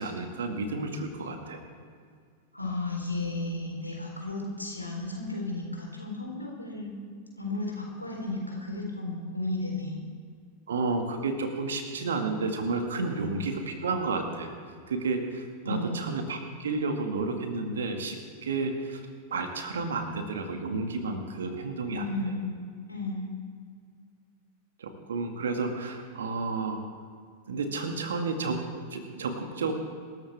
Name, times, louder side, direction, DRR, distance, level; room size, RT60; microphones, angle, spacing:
voice 1, 0.0-1.6 10.7-14.5 14.9-19.0 19.3-22.0 24.8-26.8 27.5-29.7, right 3 dB, 65° right, 5 dB, 2.0 m, -31 dB
voice 2, 2.5-7.0 7.4-10.0 13.0-13.4 15.6-16.1 21.9-22.5 22.9-23.3, left 2 dB, 85° left, -1 dB, 4.0 m, -34 dB
26.0 x 14.0 x 3.6 m, 2.1 s
figure-of-eight pair, 90°, 0 cm